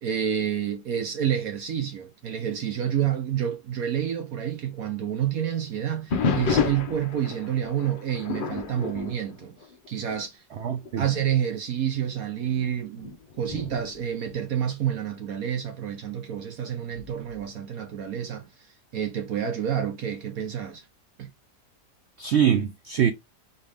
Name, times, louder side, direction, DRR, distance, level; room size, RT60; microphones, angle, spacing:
voice 1, 0.0-9.6 9.9-10.4 11.0-18.5 18.9-20.8 21.2-21.3, right 9 dB, 65° right, 1.1 m, -29 dB
sound 1, 6.1-10.2 10.6-10.9 11.5-11.6 12.4-15.1 16.9-17.4, left 5 dB, 80° left, 0.4 m, -31 dB
voice 2, 10.6-11.1 22.2-23.1, right 9 dB, 85° right, 0.5 m, -23 dB
4.3 x 3.5 x 3.3 m
omnidirectional pair, 1.7 m